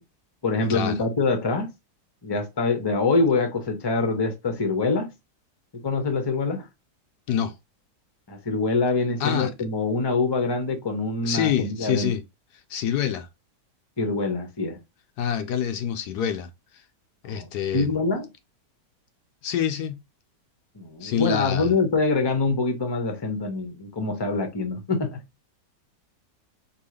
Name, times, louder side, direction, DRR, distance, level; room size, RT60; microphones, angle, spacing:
voice 1, 0.4-1.7 2.2-5.1 5.8-6.7 8.3-12.1 14.0-14.8 17.2-17.5 17.7-18.3 20.8-25.2, left 3 dB, 20° left, 0.8 m, -25 dB
voice 2, 9.2-9.5 11.2-12.2 12.7-13.3 15.2-16.5 17.2-17.9 19.4-19.9 21.0-21.7, left 9 dB, 75° left, 1.2 m, -26 dB
4.6 x 3.1 x 3.2 m
omnidirectional pair, 1.8 m